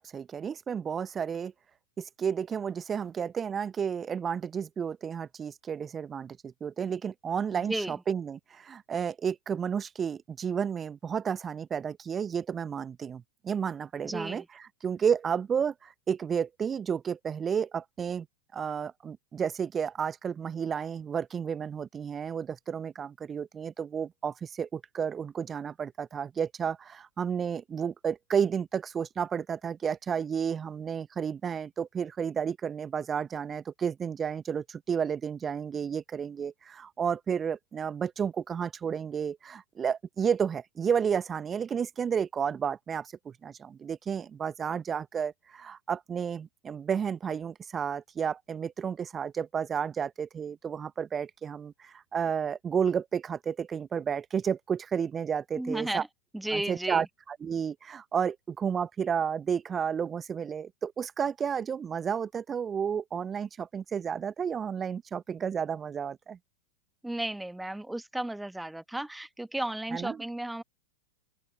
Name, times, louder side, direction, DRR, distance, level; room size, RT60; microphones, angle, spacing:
voice 1, 0.0-1.5 2.0-18.3 18.5-56.0 56.5-66.4 69.9-70.2, right 7 dB, 20° right, 1.4 m, -32 dB
voice 2, 14.0-14.4 55.6-56.1 56.3-57.1 67.0-70.6, right 1 dB, 5° right, 1.5 m, -34 dB
open air
figure-of-eight pair, 90°, 0 cm